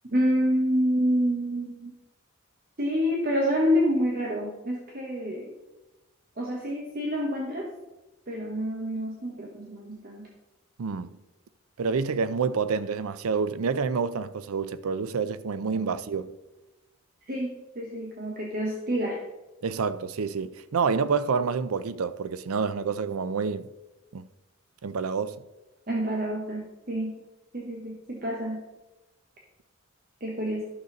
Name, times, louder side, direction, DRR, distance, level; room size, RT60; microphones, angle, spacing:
voice 1, 0.1-1.9 2.8-5.5 6.4-7.7 8.3-10.3 15.6-15.9 17.3-19.2 25.9-27.1 27.5-28.6 30.2-30.6, equal, 45° right, 1.1 m, -28 dB
voice 2, 10.8-11.2 11.8-16.3 19.6-23.7 24.1-24.3 24.8-25.4, right 5 dB, 85° right, 0.5 m, -28 dB
12.0 x 6.5 x 4.0 m
head